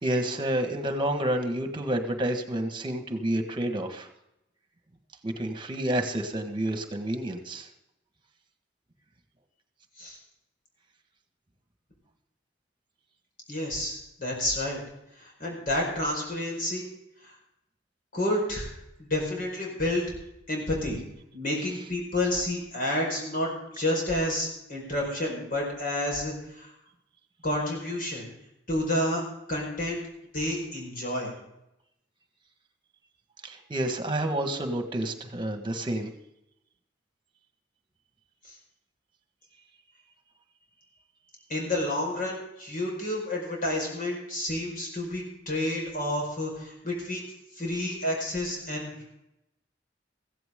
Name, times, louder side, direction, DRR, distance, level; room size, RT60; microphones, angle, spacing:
voice 1, 0.0-4.1 5.2-7.7 33.4-36.1, right 1 dB, 25° right, 6 dB, 1.6 m, -29 dB
voice 2, 13.5-14.8 15.2-16.9 18.1-18.7 19.0-20.1 20.5-21.0 21.3-26.7 27.4-28.3 28.7-29.2 29.5-30.0 30.3-31.3 38.4-38.5 41.5-47.3 47.6-49.2, left 1 dB, 50° left, -1 dB, 4.9 m, -30 dB
15.5 x 15.5 x 3.8 m, 0.84 s
head